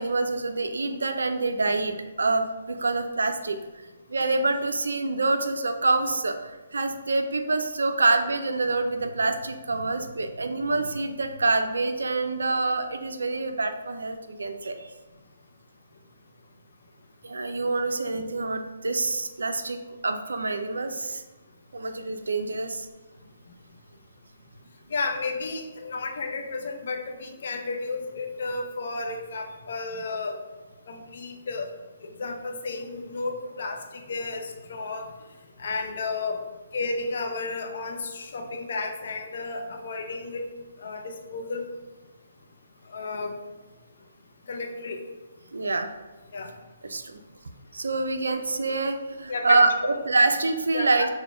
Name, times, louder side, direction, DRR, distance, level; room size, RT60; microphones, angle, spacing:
voice 1, 0.0-3.6 4.1-14.9 17.2-21.2 21.7-22.9 45.5-45.9 46.8-47.2 47.7-51.1, right 3 dB, 75° right, 7 dB, 0.3 m, -26 dB
voice 2, 24.9-30.3 30.9-31.7 32.0-35.1 35.6-36.4 36.7-40.5 40.8-41.7 42.9-43.4 44.5-45.0 46.3-46.5 49.3-49.6 50.7-51.1, left 3 dB, 55° left, 3 dB, 0.5 m, -32 dB
5.7 x 2.1 x 2.3 m, 1.2 s
figure-of-eight pair, 135°, 0 cm